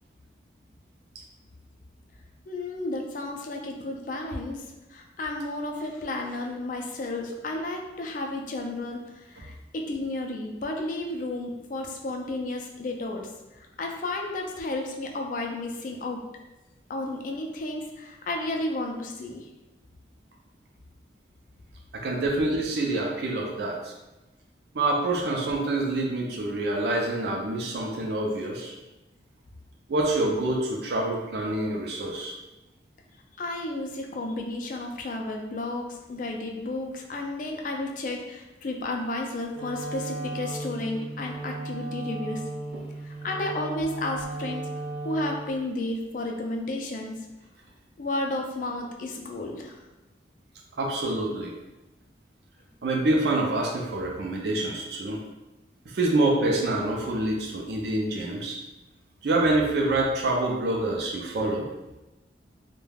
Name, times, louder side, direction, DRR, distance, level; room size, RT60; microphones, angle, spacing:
voice 1, 2.5-4.6 4.9-13.3 13.8-16.2 16.9-19.5 33.4-42.4 43.0-44.7 45.0-47.2 48.0-49.8, left 2 dB, 45° left, 2 dB, 0.3 m, -32 dB
voice 2, 21.9-23.9 24.7-28.7 29.9-32.3 42.7-42.8 50.8-51.5 52.8-55.2 55.9-58.6 59.2-61.7, right 2 dB, 65° right, -1 dB, 0.4 m, -26 dB
Wind instrument woodwind instrument, 39.5-45.5, right 2 dB, 10° right, 0.6 m, -35 dB
2.3 x 2.1 x 3.2 m, 1.0 s
head